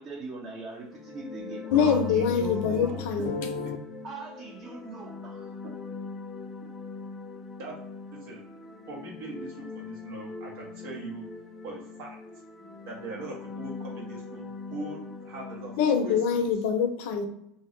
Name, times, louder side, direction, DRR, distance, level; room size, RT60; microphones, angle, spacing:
voice 1, 0.0-3.0 4.0-5.5, right 3 dB, 40° right, 0.6 m, -40 dB
sound 1, 0.8-16.5, left 4 dB, 10° left, 0.5 m, -42 dB
voice 2, 1.7-3.8 15.8-17.3, left 6 dB, 70° left, 0.5 m, -25 dB
voice 3, 8.1-8.4 8.9-11.2 11.6-12.2 12.9-15.7 16.0-16.5, right 2 dB, 75° right, 0.9 m, -41 dB
2.7 x 2.0 x 3.7 m
supercardioid pair, 125°, 0 cm